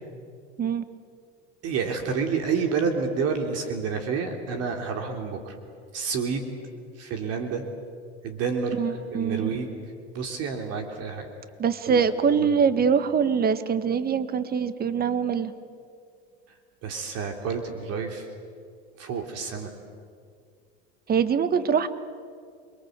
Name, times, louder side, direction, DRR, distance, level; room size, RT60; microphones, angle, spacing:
voice 1, 1.6-5.6 5.9-6.5 7.0-7.6 8.2-9.7 10.1-11.3 11.8-12.1 12.3-12.5 16.8-18.3 19.0-19.7, right 5 dB, 45° right, 4 dB, 3.6 m, -29 dB
voice 2, 8.8-9.5 11.6-15.5 21.1-21.9, right 6 dB, 30° right, 12 dB, 1.7 m, -23 dB
29.0 x 23.0 x 8.3 m, 2.2 s
hypercardioid pair, 90°, 33 cm